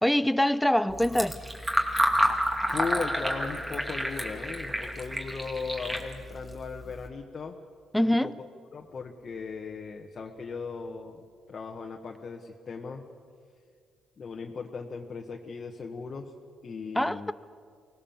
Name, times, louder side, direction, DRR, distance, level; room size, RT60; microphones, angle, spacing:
voice 1, 0.0-1.4 7.9-8.3 16.9-17.3, left 1 dB, 5° left, 0.7 m, -24 dB
Fill (with liquid), 0.9-7.1, equal, 15° right, 2.5 m, -30 dB
voice 2, 2.7-7.6 8.0-8.5 8.7-11.2 11.5-13.0 14.2-16.3 16.6-17.3, left 4 dB, 45° left, 1.5 m, -37 dB
24.0 x 18.5 x 7.4 m
cardioid pair, 90°, 0 cm